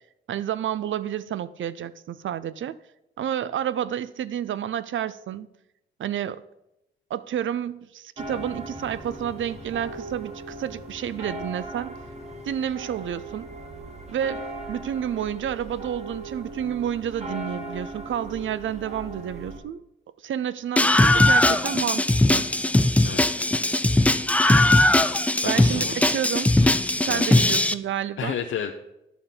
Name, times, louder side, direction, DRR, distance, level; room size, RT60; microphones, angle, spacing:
voice 1, 0.3-2.8 3.2-5.5 6.0-6.4 7.1-11.9 12.4-13.5 14.1-19.9 20.2-22.4 25.4-26.5 27.0-28.4, right 10 dB, 75° right, 0.5 m, -30 dB
sound 1, 8.2-19.6, right 1 dB, 35° right, 1.9 m, -38 dB
Screaming, 20.8-27.7, left 1 dB, 5° left, 0.4 m, -19 dB
voice 2, 23.0-23.5 25.4-26.0 26.6-26.7 27.0-27.3 28.2-28.7, left 8 dB, 75° left, 0.7 m, -32 dB
11.0 x 6.9 x 5.7 m
wide cardioid pair, 145°, 20 cm